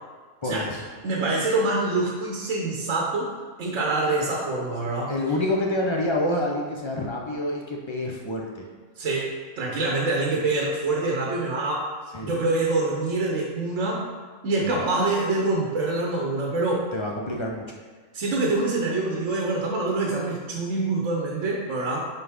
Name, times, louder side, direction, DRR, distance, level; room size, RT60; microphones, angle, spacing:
voice 1, 0.4-0.8 5.1-8.7 12.1-12.3 14.6-14.8 16.9-17.6, left 1 dB, 30° left, -1 dB, 0.5 m, -27 dB
voice 2, 1.0-3.3 3.6-5.1 9.0-11.9 12.2-14.1 14.4-16.9 18.1-22.0, right 2 dB, 60° right, -2 dB, 1.2 m, -25 dB
9.5 x 3.8 x 3.5 m, 1.4 s
omnidirectional pair, 1.5 m